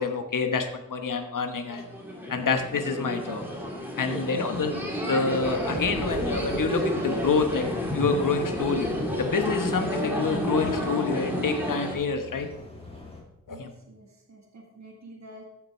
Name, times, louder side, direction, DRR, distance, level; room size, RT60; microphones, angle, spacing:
voice 1, 0.0-1.8 2.3-3.4 4.0-4.7 5.1-7.7 7.9-8.9 9.2-12.5 13.5-13.7, left 4 dB, 80° left, 6 dB, 1.2 m, -27 dB
sound 1, 1.7-11.9, equal, 5° right, 2.6 m, -30 dB
voice 2, 4.1-4.5 13.5-15.4, right 1 dB, 60° right, -1 dB, 1.9 m, -48 dB
sound 2, 5.3-13.2, left 1 dB, 20° left, 2.4 m, -41 dB
14.5 x 5.9 x 4.4 m, 0.93 s
wide cardioid pair, 100°, 32 cm